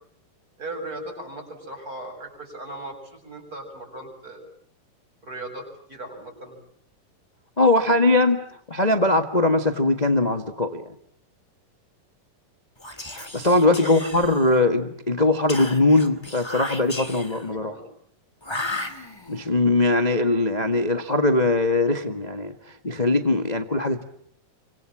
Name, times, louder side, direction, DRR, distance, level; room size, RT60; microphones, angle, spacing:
voice 1, 0.6-4.4 5.2-6.6 7.7-8.0 13.6-14.3 17.5-17.9, right 2 dB, 25° right, 5 dB, 8.0 m, -38 dB
voice 2, 7.6-10.9 13.1-17.7 19.3-24.1, left 2 dB, 55° left, 7 dB, 0.4 m, -21 dB
Whispering, 12.8-14.7 15.5-17.5 18.4-19.5, left 2 dB, 10° left, 2.0 m, -34 dB
30.0 x 25.0 x 7.5 m, 0.67 s
omnidirectional pair, 3.9 m